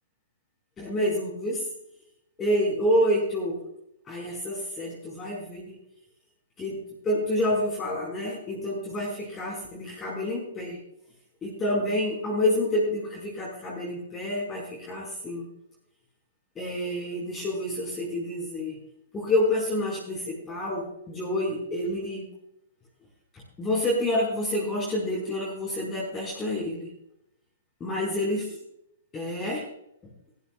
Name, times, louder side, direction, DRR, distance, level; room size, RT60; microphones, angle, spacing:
voice 1, 0.8-1.7 2.4-3.6 4.0-5.8 6.6-6.8 7.0-10.8 11.4-15.4 16.5-18.8 19.1-22.2 23.3-26.9 27.8-28.6 29.1-29.6 30.0-30.1, left 1 dB, 15° left, -5 dB, 5.0 m, -28 dB
15.0 x 14.0 x 2.4 m, 0.78 s
hypercardioid pair, 140°, 0 cm